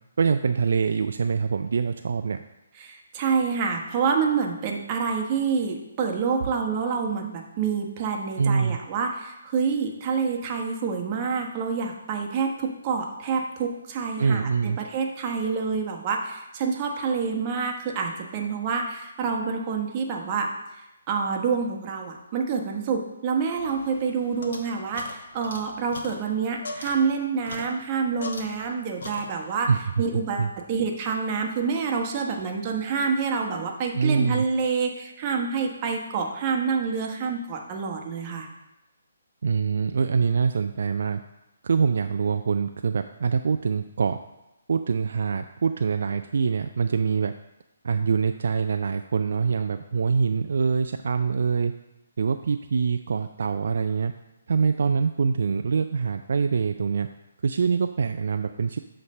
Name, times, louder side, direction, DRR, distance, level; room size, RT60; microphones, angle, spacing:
voice 1, 0.2-2.4 8.4-8.8 14.2-14.8 29.7-29.8 30.1-30.5 33.9-34.4 39.4-41.2 41.6-44.2 44.7-47.3 47.8-51.7 52.2-54.1 54.5-57.1 57.4-58.8, right 5 dB, 65° right, 7 dB, 0.3 m, -24 dB
voice 2, 2.8-20.5 21.1-29.7 30.0-38.5, right 5 dB, 30° right, 2 dB, 1.0 m, -27 dB
sound 1, 23.6-28.7 29.0-29.7, left 2 dB, 65° left, 1.0 m, -40 dB
8.2 x 3.2 x 5.3 m, 0.94 s
figure-of-eight pair, 145°, 0 cm